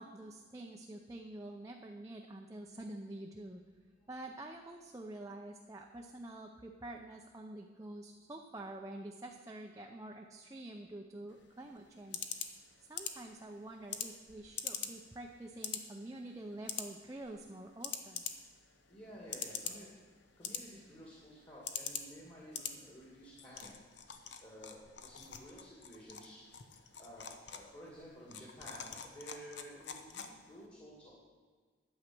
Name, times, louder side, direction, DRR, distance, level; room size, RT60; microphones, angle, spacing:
voice 1, 0.0-3.6 4.1-12.3 12.8-18.2, right 1 dB, 15° right, 1 dB, 0.6 m, -47 dB
sound 1, 11.3-30.7, left 8 dB, 65° left, 0.9 m, -46 dB
voice 2, 18.9-19.9 20.4-23.7 24.4-26.4 27.0-31.2, equal, 30° left, -5 dB, 2.4 m, -53 dB
11.5 x 8.2 x 6.1 m, 1.5 s
head